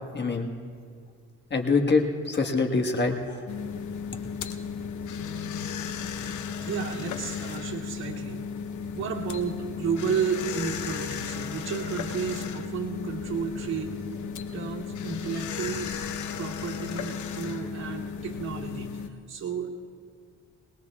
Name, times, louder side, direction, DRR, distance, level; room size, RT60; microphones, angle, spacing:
voice 1, 0.1-0.5 1.5-3.4, left 3 dB, 35° left, 2 dB, 1.5 m, -25 dB
Vending Machines - Food Machine Direct, 3.5-19.1, left 6 dB, 75° left, 0.9 m, -35 dB
voice 2, 6.6-8.4 8.9-14.0 14.5-15.9 16.4-19.7, right 6 dB, 60° right, -5 dB, 2.7 m, -32 dB
21.5 x 20.5 x 2.4 m, 2.1 s
cardioid pair, 90°, 30 cm